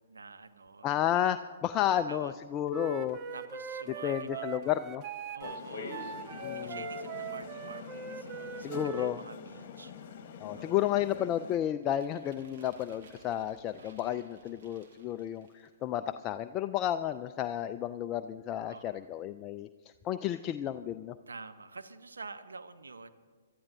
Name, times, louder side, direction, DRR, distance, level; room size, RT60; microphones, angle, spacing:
voice 1, 0.1-0.9 1.8-2.3 3.3-4.7 5.3-10.9 13.8-14.3 18.7-19.1 21.3-23.1, right 3 dB, 75° right, 9 dB, 0.9 m, -48 dB
voice 2, 0.8-3.2 3.9-5.0 6.4-6.8 8.6-9.2 10.4-19.7 20.0-21.2, left 11 dB, 25° left, 10 dB, 0.3 m, -32 dB
Wind instrument woodwind instrument, 2.7-9.1, right 6 dB, 25° right, 0.8 m, -41 dB
sound 1, 5.4-11.6, left 6 dB, 45° left, 1.3 m, -44 dB
sound 2, 11.8-15.8, right 4 dB, 50° right, 1.7 m, -59 dB
27.5 x 13.0 x 2.7 m, 1.5 s
figure-of-eight pair, 120°, 0 cm